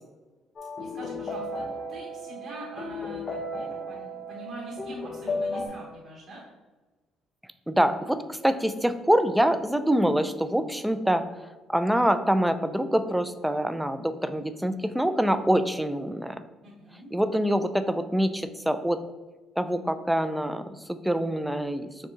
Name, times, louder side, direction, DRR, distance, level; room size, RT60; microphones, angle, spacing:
sound 1, 0.6-5.7, left 1 dB, 40° left, 1.0 m, -34 dB
voice 1, 0.8-6.4 16.6-17.2, right 1 dB, 60° right, -4 dB, 1.1 m, -43 dB
voice 2, 7.7-11.2 11.7-16.4 17.1-19.0 19.6-20.6 20.9-21.9, equal, 5° right, 9 dB, 0.4 m, -25 dB
6.6 x 2.3 x 2.8 m, 1.2 s
cardioid pair, 80°, 0 cm